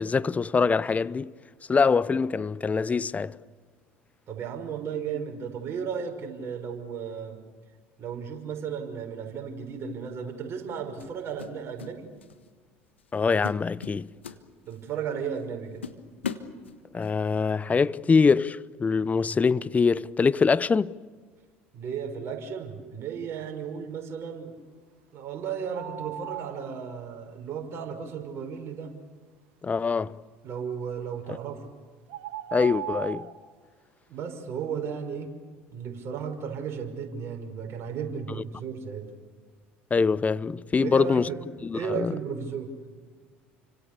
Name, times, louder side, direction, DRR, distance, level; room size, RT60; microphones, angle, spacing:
voice 1, 0.0-1.3 1.7-3.4 13.1-14.1 16.9-21.0 29.6-30.2 31.3-31.4 32.5-33.3 39.9-41.3 41.6-42.2, left 5 dB, 25° left, 0.8 m, -24 dB
voice 2, 4.3-7.4 8.0-12.1 14.6-15.8 21.7-24.5 25.1-28.9 30.4-31.7 34.1-35.3 35.7-39.1 40.8-41.4 41.7-42.7, right 7 dB, 45° right, 5.7 m, -34 dB
sound 1, 9.7-9.9 11.0-11.9 12.2-12.5 13.0-13.1 13.4-14.9 15.4-15.5 15.8-17.1, left 7 dB, 90° left, 1.3 m, -38 dB
sound 2, 25.7-26.7 31.2-31.4 32.1-33.4, right 12 dB, 65° right, 2.4 m, -37 dB
29.5 x 25.5 x 6.9 m
hypercardioid pair, 70°, 6 cm